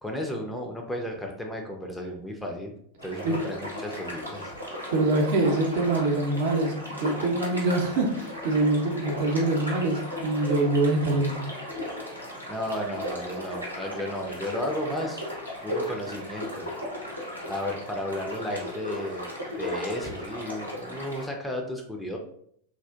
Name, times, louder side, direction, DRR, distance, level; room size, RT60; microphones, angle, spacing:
voice 1, 0.0-2.7 3.0-4.5 12.5-15.2 15.6-16.7 17.5-22.2, left 1 dB, 5° left, 1 dB, 0.4 m, -33 dB
sound 1, 3.0-21.3, left 1 dB, 90° right, 0.8 m, -36 dB
voice 2, 4.9-11.4, right 2 dB, 55° right, 2 dB, 0.6 m, -24 dB
3.3 x 2.4 x 2.4 m, 0.67 s
figure-of-eight pair, 90°, 0 cm